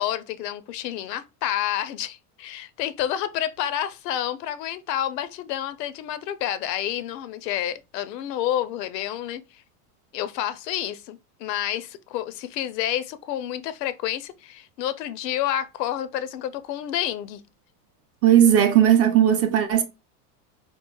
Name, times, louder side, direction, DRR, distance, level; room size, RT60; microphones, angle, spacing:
voice 1, 0.0-9.6 10.1-17.4, left 11 dB, 90° left, 0.5 m, -29 dB
voice 2, 18.2-19.8, right 10 dB, 35° right, 0.4 m, -17 dB
3.0 x 2.4 x 2.2 m
supercardioid pair, 105°, 48 cm